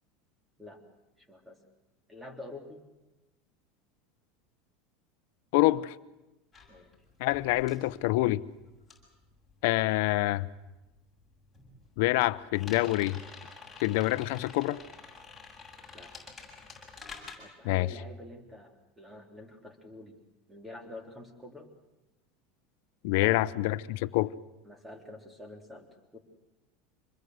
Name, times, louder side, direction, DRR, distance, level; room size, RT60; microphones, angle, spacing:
voice 1, 1.2-1.6 2.1-2.8 6.7-6.9 15.9-16.1 17.4-20.2 20.5-21.7 23.2-23.4 24.6-26.2, left 1 dB, 5° right, 3.6 m, -47 dB
voice 2, 5.5-5.9 7.2-8.4 9.6-10.5 12.0-13.2 13.8-14.8 17.6-17.9 23.0-24.3, left 18 dB, 70° left, 0.9 m, -26 dB
sound 1, 6.5-10.3 10.6-17.3, left 4 dB, 10° left, 7.7 m, -49 dB
27.0 x 21.5 x 8.0 m
supercardioid pair, 135°, 0 cm